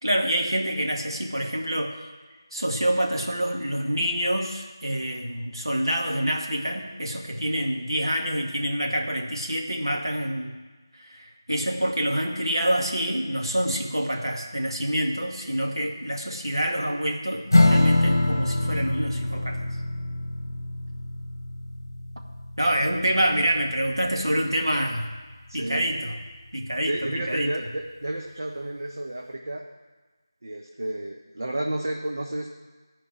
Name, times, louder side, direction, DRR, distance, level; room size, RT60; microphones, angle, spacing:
voice 1, 0.0-1.9 2.5-10.5 10.9-19.6 22.6-25.1 25.5-26.2 26.5-27.5, equal, 85° right, 0 dB, 2.2 m, -27 dB
Strum, 17.5-24.4, left 2 dB, 55° left, 1.1 m, -25 dB
voice 2, 25.5-25.9 26.8-29.6 30.4-32.5, right 1 dB, 50° right, 1 dB, 1.1 m, -31 dB
14.0 x 5.1 x 8.9 m, 1.3 s
figure-of-eight pair, 165°, 2 cm